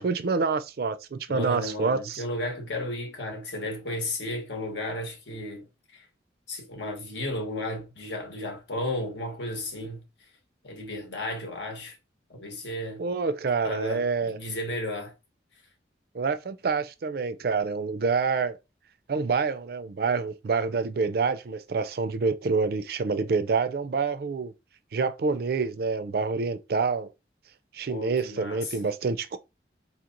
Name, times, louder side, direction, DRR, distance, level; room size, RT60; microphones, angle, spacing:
voice 1, 0.0-2.2 13.0-14.4 16.1-18.6 19.1-24.5 24.9-27.1 27.7-29.4, right 4 dB, 55° right, 0.4 m, -27 dB
voice 2, 1.3-6.1 6.5-10.0 10.6-12.0 12.3-13.0 13.6-15.1 27.9-28.8, left 1 dB, 80° left, 1.0 m, -34 dB
4.0 x 2.9 x 2.5 m
head